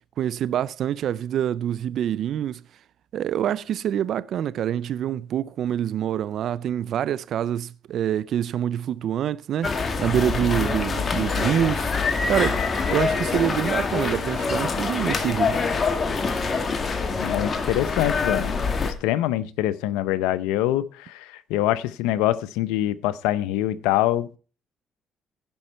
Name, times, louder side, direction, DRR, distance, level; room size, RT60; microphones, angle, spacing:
voice 1, 0.2-2.6 3.1-9.7 10.0-12.6 12.9-15.5, right 10 dB, 65° right, 0.4 m, -26 dB
sound 1, 9.6-18.9, left 4 dB, 40° left, 1.8 m, -25 dB
voice 2, 17.2-18.6 18.8-24.4, left 14 dB, 90° left, 0.6 m, -24 dB
16.0 x 5.5 x 4.4 m
supercardioid pair, 70°, 0 cm